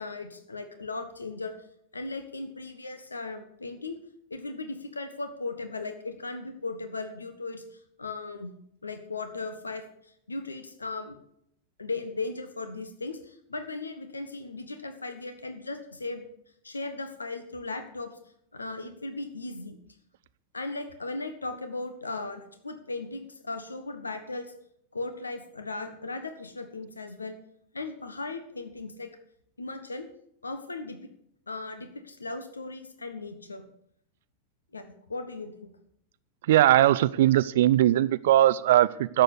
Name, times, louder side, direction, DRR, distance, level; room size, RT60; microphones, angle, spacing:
voice 1, 0.0-1.5 1.9-4.0 4.3-8.5 8.8-11.2 11.8-16.2 16.6-18.2 18.5-19.8 20.5-24.5 24.9-27.4 27.7-29.1 29.6-30.1 30.4-31.1 31.5-33.6 34.7-35.7, left 3 dB, 80° left, 8 dB, 1.4 m, -37 dB
voice 2, 36.5-39.2, right 13 dB, 55° right, 16 dB, 0.4 m, -20 dB
11.5 x 7.6 x 8.5 m, 0.72 s
figure-of-eight pair, 90°, 0 cm